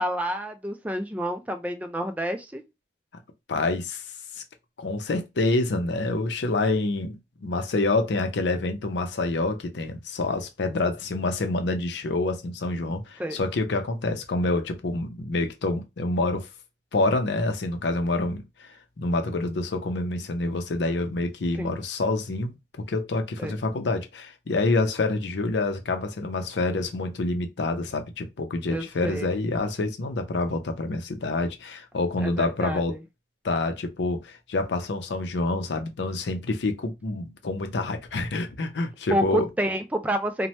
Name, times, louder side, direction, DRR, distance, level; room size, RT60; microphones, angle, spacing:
voice 1, 0.0-2.6 13.2-13.4 21.6-21.8 23.4-23.6 28.7-29.3 32.2-33.0 39.1-40.5, equal, 10° right, 0.3 m, -29 dB
voice 2, 3.5-4.4 4.8-16.5 16.9-33.0 33.4-39.5, left 2 dB, 80° left, 0.5 m, -27 dB
2.8 x 2.2 x 3.0 m
head